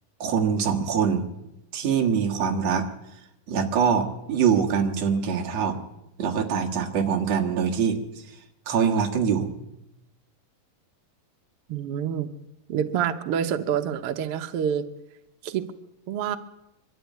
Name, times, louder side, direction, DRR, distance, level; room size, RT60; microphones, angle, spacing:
voice 1, 0.2-1.3 1.7-2.9 3.5-5.8 6.2-8.2 8.7-9.5, right 7 dB, 55° right, 3 dB, 2.6 m, -24 dB
voice 2, 11.7-12.3 12.7-14.8 15.4-15.6 16.1-16.4, right 9 dB, 85° right, 8 dB, 1.3 m, -27 dB
23.5 x 13.0 x 9.3 m, 0.90 s
omnidirectional pair, 4.0 m